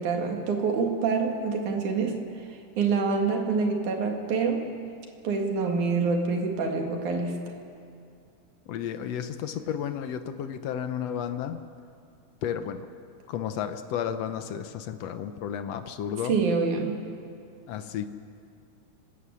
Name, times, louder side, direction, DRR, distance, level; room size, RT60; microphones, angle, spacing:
voice 1, 0.0-2.2 2.5-4.7 5.2-7.5 16.2-17.0, right 4 dB, 75° right, 2 dB, 3.5 m, -26 dB
voice 2, 8.7-11.6 12.4-12.9 13.3-16.4 17.7-18.1, left 9 dB, 70° left, 9 dB, 1.8 m, -32 dB
30.0 x 12.5 x 8.5 m, 2.6 s
omnidirectional pair, 3.5 m